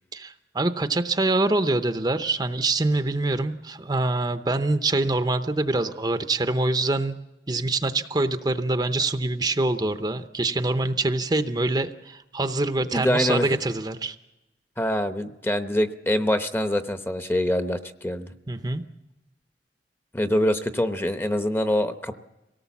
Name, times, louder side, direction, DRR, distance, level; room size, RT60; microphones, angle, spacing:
voice 1, 0.1-7.2 7.5-14.1 18.5-18.8, right 2 dB, 25° right, 9 dB, 0.7 m, -25 dB
voice 2, 12.8-13.5 14.8-18.3 20.1-22.1, left 1 dB, 15° left, 9 dB, 0.8 m, -25 dB
24.5 x 18.0 x 7.2 m, 1.0 s
head